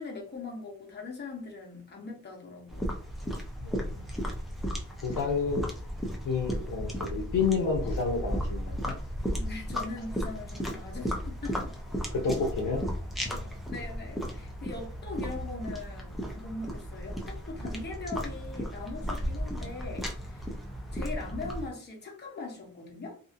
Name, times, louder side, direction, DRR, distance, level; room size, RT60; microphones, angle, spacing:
voice 1, 0.0-2.9 9.3-11.7 13.7-20.6 20.9-23.2, left 3 dB, 30° left, -1 dB, 0.9 m, -41 dB
sound 1, 2.7-21.7, equal, ahead, 0.6 m, -35 dB
voice 2, 3.6-4.0 5.0-5.6 6.2-8.9 12.1-12.8 13.2-13.5, left 5 dB, 75° left, 2 dB, 0.7 m, -30 dB
2.7 x 2.6 x 2.5 m, 0.44 s
wide cardioid pair, 125°, 32 cm